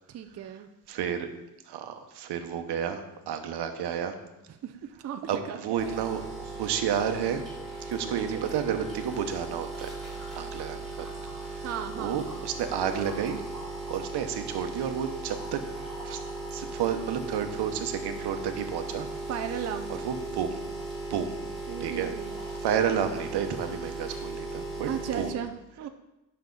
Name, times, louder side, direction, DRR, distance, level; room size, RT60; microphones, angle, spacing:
voice 1, 0.1-0.7 4.5-6.0 7.8-8.5 11.6-12.2 19.3-20.0 21.7-22.4 24.9-25.9, right 8 dB, 40° right, 6 dB, 0.5 m, -36 dB
voice 2, 0.9-1.3 1.7-4.2 5.3-6.2 6.5-7.4 7.9-9.9 10.3-11.1 11.5-11.7 12.0-13.4 13.9-15.6 16.0-16.2 16.5-19.1 20.0-20.6 21.1-21.4 21.8-22.1 22.6-24.9 25.2-25.3, right 8 dB, 75° right, 7 dB, 1.1 m, -31 dB
sound 1, 5.8-25.3, right 2 dB, ahead, 3.1 m, -37 dB
10.5 x 6.5 x 3.9 m, 0.95 s
cardioid pair, 145°, 40 cm